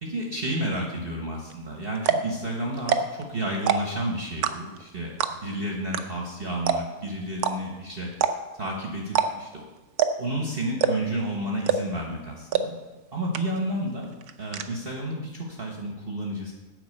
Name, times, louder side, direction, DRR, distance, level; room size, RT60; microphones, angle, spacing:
voice 1, 0.0-8.2 8.6-9.6 10.2-12.7 13.1-14.1 14.4-16.5, right 1 dB, 40° right, -1 dB, 1.4 m, -31 dB
sound 1, 1.5-1.6 2.0-2.3 2.8-3.2 3.5-4.0 4.4-4.8 5.2-5.5 5.9-6.0 6.3-6.4 6.7-7.0 7.4-7.5 8.1-8.6 9.1-9.5 10.0-10.3 10.8-11.2 11.7-12.0 12.5-12.6 13.0-13.1 13.3-13.8 14.0-14.6, right 7 dB, 75° right, 1.2 m, -23 dB
8.8 x 5.8 x 7.9 m, 1.1 s
omnidirectional pair, 1.7 m